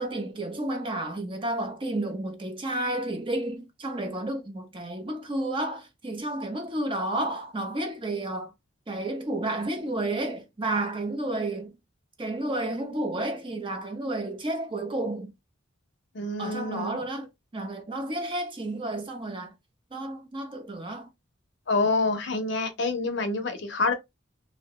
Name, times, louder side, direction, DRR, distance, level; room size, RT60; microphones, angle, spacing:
voice 1, 0.0-8.5 8.9-11.8 12.2-15.3 16.4-17.3 17.5-19.5 19.9-21.1, right 1 dB, 25° right, 0.5 m, -31 dB
voice 2, 16.1-17.0 21.7-23.9, left 3 dB, 60° left, 0.6 m, -27 dB
2.6 x 2.1 x 2.9 m
head